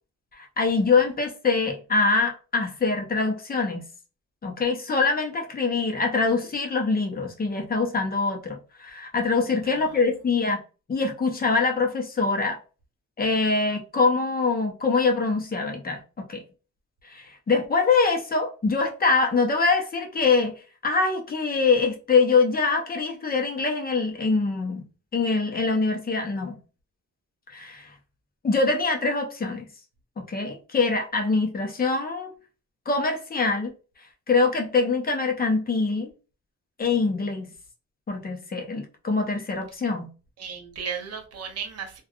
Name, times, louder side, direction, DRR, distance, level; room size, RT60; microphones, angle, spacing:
voice 1, 0.3-3.8 4.4-10.6 10.9-12.6 13.2-16.0 16.3-16.4 17.1-26.6 27.5-27.9 28.4-29.7 30.3-32.3 32.9-33.7 34.3-36.1 36.8-37.5 38.1-40.1, left 4 dB, 30° left, 0.8 m, -24 dB
voice 2, 9.6-10.0 40.4-42.0, right 6 dB, 55° right, 0.9 m, -35 dB
3.3 x 2.4 x 2.3 m
cardioid pair, 90°, 30 cm